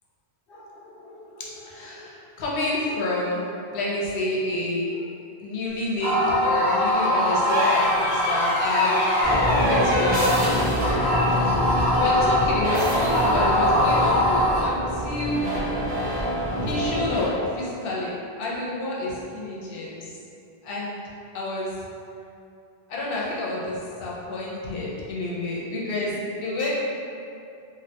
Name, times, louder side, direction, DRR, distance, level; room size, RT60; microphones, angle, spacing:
voice 1, 0.5-5.1 5.4-9.0 9.3-15.5 16.6-20.2 20.6-20.9 21.3-21.8 22.9-26.7, left 2 dB, 70° left, -5 dB, 0.7 m, -29 dB
sound 1, 6.0-14.6, left 1 dB, 80° right, 0.9 m, -23 dB
sound 2, 7.4-10.4 12.1-12.2, left 1 dB, 35° left, 0.5 m, -24 dB
sound 3, 9.2-17.3, equal, 10° right, 0.6 m, -26 dB
2.3 x 2.1 x 2.7 m, 2.6 s
omnidirectional pair, 1.0 m